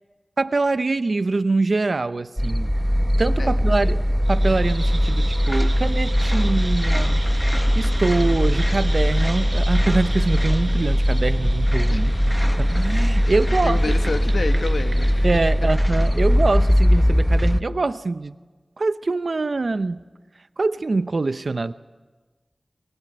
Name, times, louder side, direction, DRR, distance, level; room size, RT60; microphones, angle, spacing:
voice 1, 0.4-2.7 3.2-4.0 4.3-7.2 7.7-13.8 15.2-18.4 18.8-20.0 20.6-21.7, right 3 dB, 65° right, 13 dB, 0.7 m, -24 dB
sound 1, 2.4-17.6, equal, 5° left, 0.8 m, -20 dB
sound 2, 4.2-15.7, right 2 dB, 40° right, 4.5 m, -38 dB
voice 2, 11.9-12.4 13.2-13.4 13.6-15.3, left 3 dB, 85° left, 7 dB, 1.3 m, -30 dB
23.5 x 23.0 x 8.0 m, 1.3 s
wide cardioid pair, 65°, 0 cm